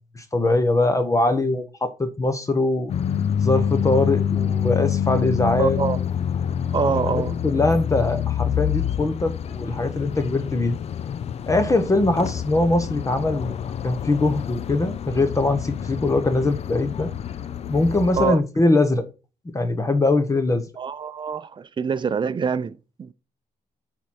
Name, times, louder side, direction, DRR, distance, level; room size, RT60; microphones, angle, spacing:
voice 1, 0.1-2.9 3.4-5.8 7.1-10.8 11.5-13.6 13.8-17.1 17.7-19.1 19.5-20.6, left 2 dB, 20° left, 1.0 m, -22 dB
sound 1, 2.9-18.4, left 9 dB, 50° left, 0.5 m, -27 dB
voice 2, 5.6-6.0 6.7-7.3 18.2-18.4 20.8-23.1, right 6 dB, 35° right, 0.6 m, -25 dB
8.3 x 4.5 x 4.3 m
cardioid pair, 105°, 14 cm